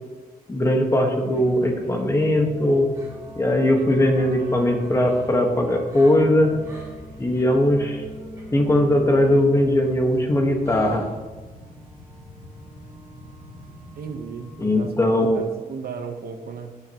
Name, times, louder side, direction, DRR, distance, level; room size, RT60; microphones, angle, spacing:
voice 1, 0.5-2.9 3.3-6.5 7.2-8.0 8.5-11.1 14.6-15.4, left 1 dB, 20° left, 2 dB, 1.5 m, -19 dB
sound 1, 1.3-14.9, equal, 20° right, 3.2 m, -41 dB
voice 2, 14.0-14.9 15.2-16.8, right 6 dB, 85° right, 6 dB, 1.1 m, -35 dB
16.5 x 7.6 x 3.0 m, 1.3 s
wide cardioid pair, 150°, 15 cm